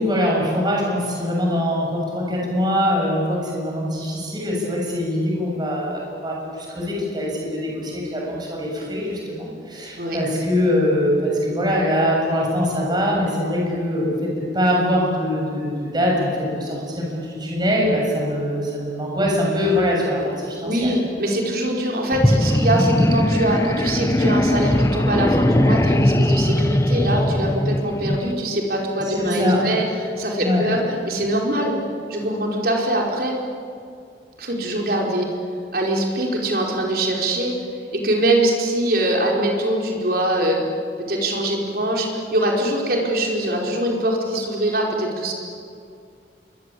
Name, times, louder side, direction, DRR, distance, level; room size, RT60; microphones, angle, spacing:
voice 1, 0.0-20.9 29.0-29.7 30.4-30.7, equal, 25° right, -2 dB, 7.0 m, -23 dB
voice 2, 20.6-29.8 30.2-31.8 32.1-33.4 34.4-35.3 35.7-37.5 37.9-40.6 41.0-45.3, right 1 dB, 55° right, -1 dB, 5.0 m, -23 dB
sound 1, 22.1-28.3, left 1 dB, 15° left, 0.8 m, -19 dB
27.5 x 23.0 x 8.7 m, 2.4 s
head